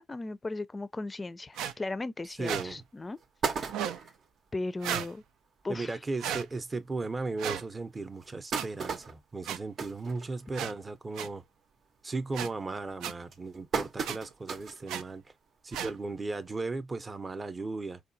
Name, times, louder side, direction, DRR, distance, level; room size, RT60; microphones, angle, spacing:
voice 1, 0.0-3.2 3.6-4.0 4.5-5.2 5.6-6.0, left 2 dB, 25° left, 0.4 m, -37 dB
sound 1, 1.5-1.7 2.4-2.6 3.7-4.0 4.8-5.1 6.2-6.4 7.4-7.6 8.5-8.6 9.4-9.6 10.5-10.7 11.1-11.3 12.3-12.5 13.0-13.1 14.0-14.2 14.9-15.0 15.7-15.9, right 10 dB, 90° right, 0.4 m, -34 dB
sound 2, 2.3-2.4 2.9-3.0 3.2-4.3 4.8-4.9 5.2-5.3 5.6-5.8 6.5-6.6 7.1-7.2 8.0-10.8 11.2-11.5 11.8-12.2 12.9-14.9 15.3-15.4 16.6-16.7, right 5 dB, 60° right, 0.7 m, -36 dB
voice 2, 2.4-2.8 5.7-11.4 12.0-15.2 15.6-18.0, right 3 dB, 25° right, 0.7 m, -36 dB
4.7 x 2.3 x 2.6 m
cardioid pair, 90°, 0 cm